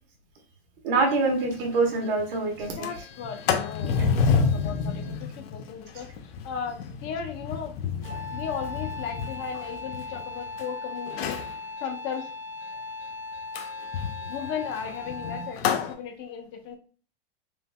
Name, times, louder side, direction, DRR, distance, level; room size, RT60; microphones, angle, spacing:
voice 1, 0.8-2.9 4.0-4.1, right 3 dB, 60° right, 2 dB, 1.2 m, -25 dB
Sliding door, 1.1-1.2 1.5-1.6 1.9-2.2 2.6-10.6 11.1-11.5 13.5-15.9, left 6 dB, 75° left, 0.7 m, -30 dB
voice 2, 2.8-7.8 8.1-11.4 11.8-12.3 14.2-16.8, left 7 dB, 40° left, 5 dB, 0.6 m, -36 dB
Wind instrument woodwind instrument, 8.0-15.7, left 3 dB, 35° right, 1.1 m, -38 dB
3.3 x 2.9 x 2.2 m, 0.38 s
hypercardioid pair, 115°, 31 cm